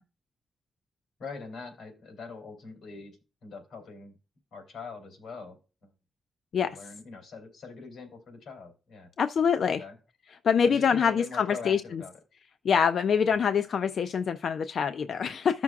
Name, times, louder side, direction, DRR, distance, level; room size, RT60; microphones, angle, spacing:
voice 1, 1.2-4.2 4.5-5.9 6.6-9.1 9.8-10.0 10.6-12.1, left 4 dB, 85° left, 2.8 m, -43 dB
voice 2, 9.2-9.8 10.4-12.0 12.6-15.6, left 7 dB, 60° left, 0.4 m, -25 dB
14.0 x 6.0 x 2.3 m
wide cardioid pair, 160°, 0 cm